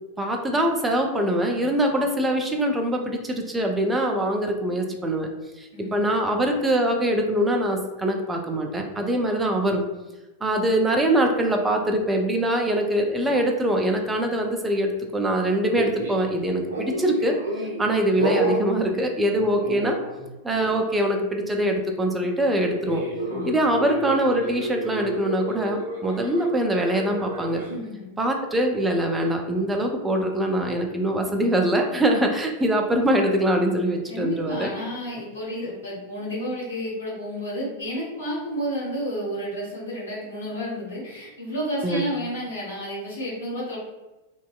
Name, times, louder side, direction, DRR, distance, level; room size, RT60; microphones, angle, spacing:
voice 1, 0.2-5.3 5.6-9.8 10.4-17.4 17.8-20.0 20.4-23.0 23.4-27.6 28.2-34.7 41.8-42.0, right 1 dB, 10° right, 2 dB, 0.4 m, -23 dB
voice 2, 5.7-6.1 23.2-23.6 27.6-28.1 34.1-43.8, equal, 65° left, -4 dB, 1.0 m, -31 dB
sound 1, 15.7-16.3 16.7-17.9 18.2-18.7 19.4-20.3 20.5-20.8 22.9-27.7, right 2 dB, 65° right, 0.5 m, -30 dB
2.6 x 2.2 x 2.3 m, 1.1 s
figure-of-eight pair, 90°, 0 cm